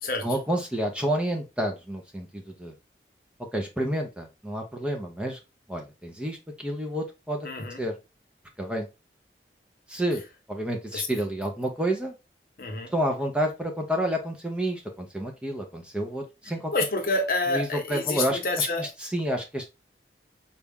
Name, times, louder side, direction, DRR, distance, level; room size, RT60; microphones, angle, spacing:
voice 1, 0.2-2.7 3.5-5.4 5.7-7.9 8.6-8.9 9.9-10.2 10.5-12.1 12.9-16.7 17.5-19.6, right 1 dB, 5° right, 0.5 m, -29 dB
voice 2, 7.4-7.8 10.9-11.1 12.6-12.9 16.7-18.9, left 2 dB, 55° left, 0.9 m, -28 dB
4.1 x 2.3 x 3.4 m
head